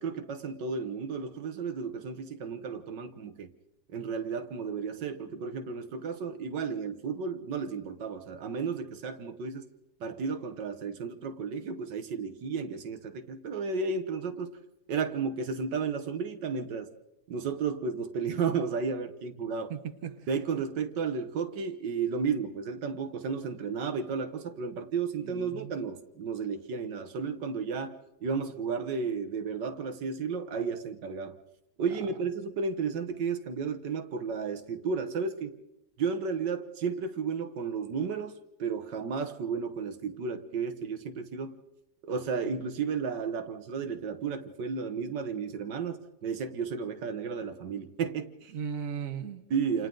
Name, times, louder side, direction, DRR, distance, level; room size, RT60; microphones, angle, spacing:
voice 1, 0.0-3.5 3.9-9.7 10.0-14.6 14.9-16.9 17.3-19.7 20.3-31.3 31.8-35.6 36.0-38.3 38.6-41.6 42.0-48.5 49.5-49.9, right 5 dB, 80° right, 1.8 m, -33 dB
voice 2, 19.7-20.3 25.2-25.8 31.9-32.0 48.5-49.4, right 7 dB, 55° right, 1.6 m, -37 dB
29.0 x 28.0 x 3.9 m
omnidirectional pair, 1.9 m